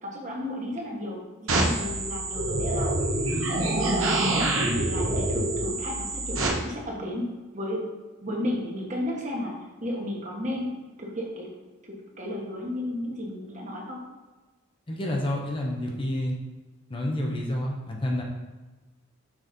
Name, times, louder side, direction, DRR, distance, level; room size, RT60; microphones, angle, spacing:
voice 1, 0.0-2.9 3.2-3.3 3.7-7.8 8.2-9.5 9.8-10.7 11.0-11.5 11.8-14.0, left 1 dB, 35° right, -2 dB, 1.3 m, -33 dB
sound 1, 1.5-6.5, right 2 dB, 85° right, 1.2 m, -26 dB
voice 2, 14.9-16.3 16.9-18.2, left 1 dB, 25° left, -1 dB, 0.8 m, -29 dB
6.1 x 4.1 x 5.1 m, 1.2 s
head